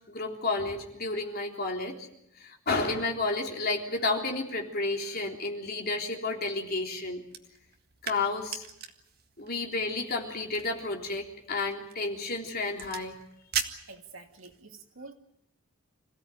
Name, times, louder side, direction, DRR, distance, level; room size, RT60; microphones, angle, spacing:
voice 1, 0.1-2.1 2.4-7.2 8.0-8.7 9.4-13.2, left 3 dB, 45° left, 3.5 m, -31 dB
sound 1, 7.2-14.6, right 7 dB, 45° right, 1.8 m, -41 dB
voice 2, 13.9-15.1, right 3 dB, 65° right, 2.5 m, -47 dB
26.5 x 16.5 x 9.2 m
head